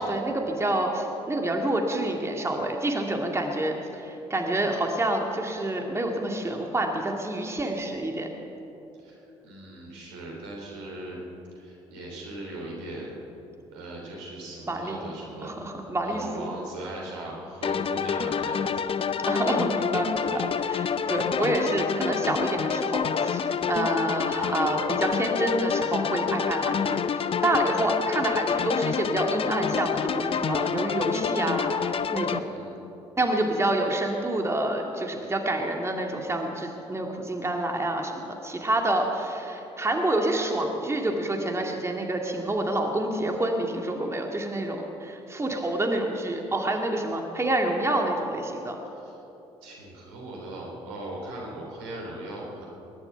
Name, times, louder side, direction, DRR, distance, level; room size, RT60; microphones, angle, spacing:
voice 1, 0.0-8.3 14.7-15.0 15.4-16.5 19.2-32.4 33.2-48.8, right 1 dB, 20° right, 2 dB, 2.2 m, -28 dB
voice 2, 9.4-11.2 11.5-13.1 13.7-18.9 20.2-20.5 24.3-24.6 32.3-32.7 49.0-49.1 49.6-52.7, right 1 dB, 80° right, -2 dB, 3.4 m, -39 dB
sound 1, 17.6-32.4, left 7 dB, 40° left, 0.7 m, -27 dB
21.5 x 11.5 x 5.8 m, 3.0 s
hypercardioid pair, 50°, 14 cm